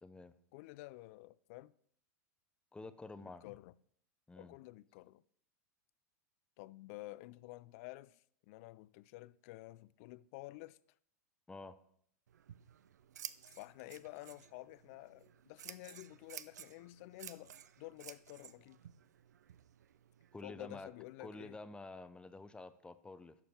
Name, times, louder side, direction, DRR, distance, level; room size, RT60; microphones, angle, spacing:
voice 1, 0.0-0.3 2.7-3.4 4.3-4.5 11.5-11.8 20.3-20.9 21.2-23.4, left 3 dB, 10° left, 0.7 m, -49 dB
voice 2, 0.5-1.7 3.2-3.7 4.4-5.2 6.6-10.8 13.4-18.8 20.4-21.6, left 19 dB, 55° left, 0.4 m, -51 dB
Scissors, 12.3-20.4, right 9 dB, 80° right, 0.6 m, -54 dB
11.5 x 6.9 x 4.4 m
hypercardioid pair, 105°, 9 cm